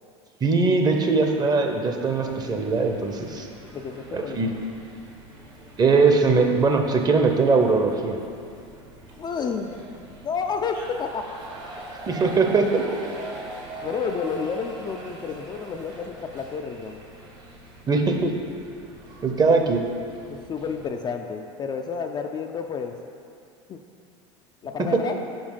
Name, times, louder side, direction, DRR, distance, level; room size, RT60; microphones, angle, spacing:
voice 1, 0.4-3.5 4.1-4.5 5.8-8.2 12.1-12.8 17.9-18.3 19.2-19.8, right 4 dB, 25° right, 3 dB, 0.7 m, -21 dB
sound 1, 2.0-20.9, right 2 dB, 65° right, 1.4 m, -43 dB
voice 2, 3.7-4.5 9.2-9.7 10.0-11.6 13.8-17.0 19.4-19.5 20.3-23.0 23.7-23.8 24.6-25.2, left 5 dB, 30° left, 4 dB, 0.4 m, -30 dB
5.2 x 4.6 x 5.4 m, 2.4 s
hypercardioid pair, 85°, 16 cm